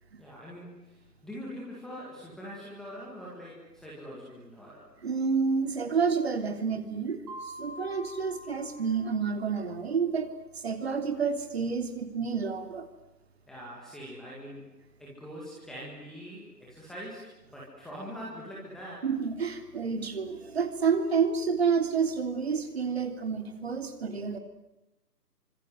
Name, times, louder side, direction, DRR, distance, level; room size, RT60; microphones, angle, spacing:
voice 1, 0.2-4.9 13.5-14.7 15.0-19.1, equal, ahead, -6 dB, 1.9 m, -43 dB
voice 2, 5.0-10.3 10.5-12.9 19.0-24.4, right 5 dB, 40° right, 7 dB, 3.3 m, -29 dB
Mallet percussion, 7.3-9.9, equal, 20° right, 4.0 m, -46 dB
30.0 x 25.5 x 7.8 m, 0.95 s
figure-of-eight pair, 165°, 49 cm